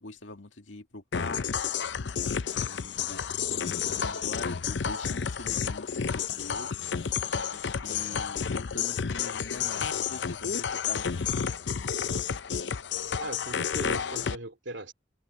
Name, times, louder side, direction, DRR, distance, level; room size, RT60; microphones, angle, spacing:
voice 1, 0.0-1.7 2.5-6.8 7.8-11.1, left 2 dB, 85° left, 2.2 m, -43 dB
sound 1, 1.1-14.4, left 7 dB, 70° left, 0.6 m, -31 dB
voice 2, 13.2-14.9, right 2 dB, 80° right, 2.5 m, -39 dB
head